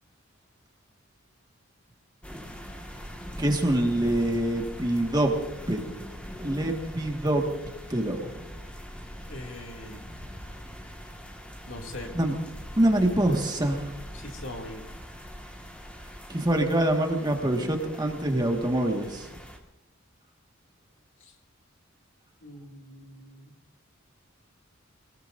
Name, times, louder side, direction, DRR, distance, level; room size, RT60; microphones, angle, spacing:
sound 1, 2.2-19.6, equal, 5° left, 1.7 m, -42 dB
voice 1, 3.4-5.3 5.7-5.8 6.4-7.5 7.9-8.5 12.1-12.3 12.8-13.9 16.3-19.3, right 1 dB, 20° right, 2 dB, 1.7 m, -25 dB
voice 2, 9.3-10.1 11.7-12.1 14.1-14.8 21.2-21.4 22.4-23.6, left 1 dB, 65° left, 1 dB, 2.5 m, -42 dB
25.0 x 19.0 x 2.6 m, 0.97 s
head